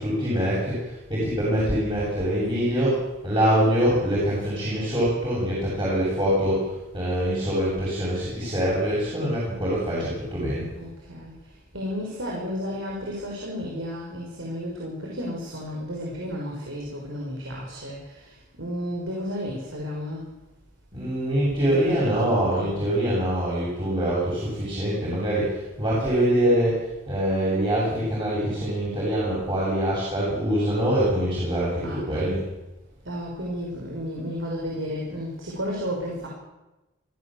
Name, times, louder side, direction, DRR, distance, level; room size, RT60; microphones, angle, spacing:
voice 1, 0.0-10.7 20.9-32.4, equal, 25° right, -7 dB, 7.8 m, -24 dB
voice 2, 10.8-20.3 21.7-22.8 31.8-32.3 33.0-36.3, equal, 75° right, -2 dB, 5.9 m, -33 dB
24.5 x 16.0 x 7.9 m, 1.0 s
head